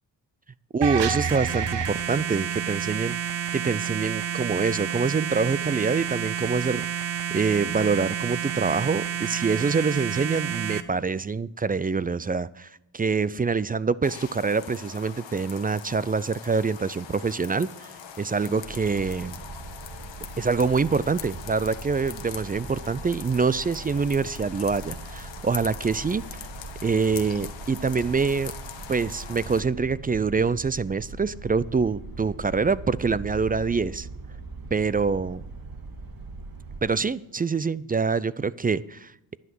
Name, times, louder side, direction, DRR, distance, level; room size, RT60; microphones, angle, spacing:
voice 1, 0.7-3.1 3.5-6.9 7.3-17.7 18.2-19.4 20.4-26.2 26.8-28.5 28.9-34.1 34.7-35.4 36.8-39.4, right 4 dB, 20° right, 19 dB, 0.3 m, -25 dB
sound 1, 0.8-10.8, right 9 dB, 65° right, 1.0 m, -29 dB
sound 2, 14.0-29.6, left 7 dB, 75° left, 1.2 m, -42 dB
sound 3, 18.6-36.8, right 3 dB, 50° right, 1.8 m, -41 dB
11.0 x 9.6 x 6.1 m, 0.84 s
cardioid pair, 60°, 45 cm